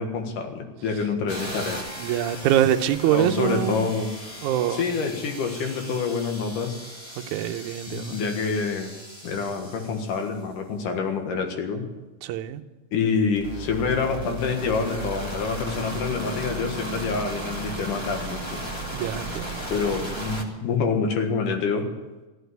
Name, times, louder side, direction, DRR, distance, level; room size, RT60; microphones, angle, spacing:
voice 1, 0.0-1.8 3.1-4.1 4.7-6.8 7.9-8.9 9.2-11.9 12.9-18.4 19.7-21.9, left 5 dB, 85° left, 3.2 m, -27 dB
sound 1, 1.3-10.3 13.3-20.4, right 1 dB, 15° left, 1.1 m, -36 dB
voice 2, 2.0-3.9 4.4-4.8 7.2-8.2 12.2-12.6 18.9-19.6, right 11 dB, 80° right, 2.1 m, -24 dB
15.0 x 11.5 x 8.1 m
omnidirectional pair, 3.6 m